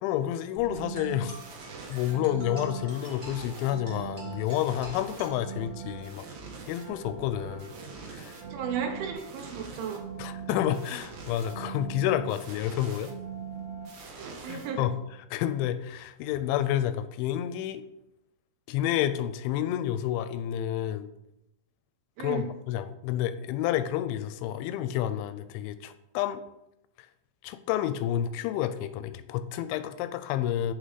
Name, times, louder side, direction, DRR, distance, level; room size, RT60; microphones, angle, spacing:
voice 1, 0.0-1.4 1.9-6.3 6.7-7.7 8.1-8.4 10.2-13.1 14.5-15.0 15.3-17.8 18.7-21.1 22.2-26.4 27.4-30.7, left 11 dB, 85° left, 11 dB, 2.9 m, -29 dB
sound 1, 0.6-15.2, right 6 dB, 60° right, 1.9 m, -41 dB
sound 2, 0.9-6.0, right 1 dB, 40° right, 1.2 m, -48 dB
voice 2, 8.5-10.0 14.1-14.8 22.2-22.5, right 7 dB, 85° right, 4 dB, 3.6 m, -34 dB
8.3 x 6.3 x 4.0 m, 0.85 s
omnidirectional pair, 5.4 m